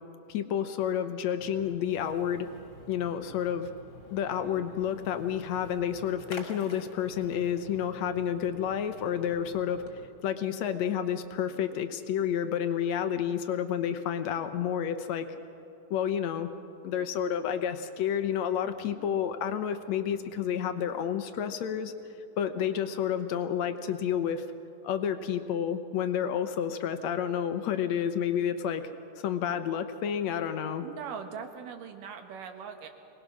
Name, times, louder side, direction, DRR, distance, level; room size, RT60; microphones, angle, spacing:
voice 1, 0.3-2.5 2.9-3.7 4.1-9.8 10.2-15.3 15.9-16.5 16.8-21.9 22.4-24.5 24.8-28.9 29.2-30.9, left 9 dB, 70° left, 9 dB, 1.9 m, -30 dB
Splash splatter, 1.4-10.1, left 2 dB, 40° left, 2.5 m, -49 dB
voice 2, 30.8-32.9, right 7 dB, 80° right, 6 dB, 3.0 m, -41 dB
24.0 x 19.5 x 6.2 m, 2.9 s
omnidirectional pair, 3.8 m